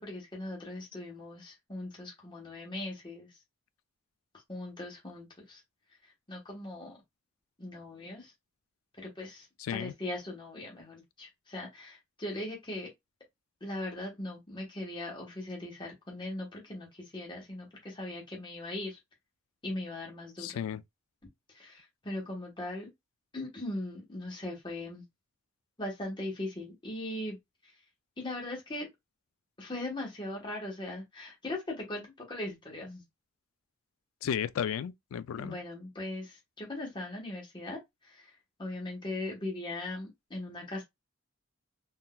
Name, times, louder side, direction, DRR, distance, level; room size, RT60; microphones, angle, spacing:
voice 1, 0.0-3.3 4.5-5.6 6.3-7.0 7.6-8.3 9.0-12.9 13.6-19.0 19.6-20.6 21.5-22.9 23.3-25.0 25.8-27.4 28.2-28.9 29.6-33.0 35.4-38.3 38.6-40.8, left 1 dB, 25° left, 1.0 m, -39 dB
voice 2, 9.6-9.9 20.4-20.8 34.2-35.6, left 8 dB, 85° left, 0.3 m, -34 dB
3.8 x 2.6 x 2.2 m
head